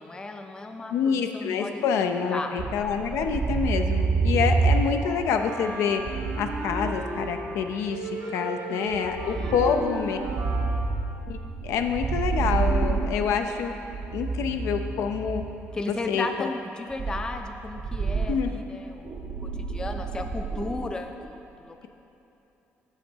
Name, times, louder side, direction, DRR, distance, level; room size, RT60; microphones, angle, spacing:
voice 1, 0.0-2.0 2.3-2.6 8.2-8.3 8.7-8.8 9.2-9.5 15.7-21.9, left 2 dB, 15° left, 5 dB, 0.4 m, -35 dB
voice 2, 0.9-6.0 6.4-10.2 11.3-13.7 14.1-15.4 16.1-16.5 18.3-18.5, left 6 dB, 85° left, 6 dB, 0.4 m, -27 dB
sound 1, 2.6-7.8 8.9-15.7 16.9-20.9, right 4 dB, 50° right, 0.7 m, -29 dB
Wind instrument woodwind instrument, 5.4-7.6 7.9-11.0, right 1 dB, 70° right, 1.0 m, -36 dB
6.7 x 5.7 x 4.5 m, 2.9 s
cardioid pair, 120°, 5 cm